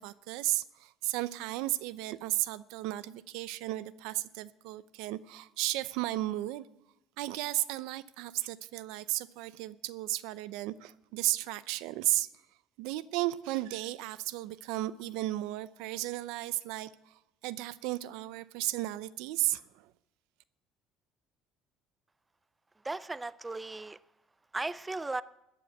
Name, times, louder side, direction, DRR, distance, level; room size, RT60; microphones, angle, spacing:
voice 1, 0.0-6.7 7.2-12.3 12.8-19.9, right 16 dB, 90° right, 0.6 m, -34 dB
voice 2, 22.8-24.0 24.5-25.2, right 2 dB, 10° right, 0.4 m, -36 dB
13.5 x 9.3 x 8.0 m
cardioid pair, 140°, 0 cm